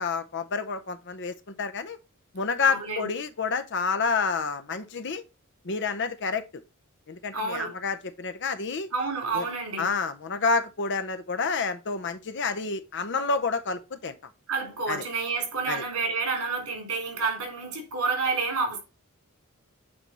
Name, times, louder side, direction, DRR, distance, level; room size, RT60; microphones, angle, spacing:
voice 1, 0.0-2.0 2.3-5.2 5.6-6.6 7.1-8.9 9.3-9.5 9.8-14.2 14.9-15.0 15.7-15.8, left 4 dB, 55° left, 0.8 m, -29 dB
voice 2, 2.6-3.1 7.3-7.7 8.9-9.9 14.5-18.8, right 4 dB, 90° right, 3.5 m, -29 dB
8.7 x 3.5 x 4.2 m
head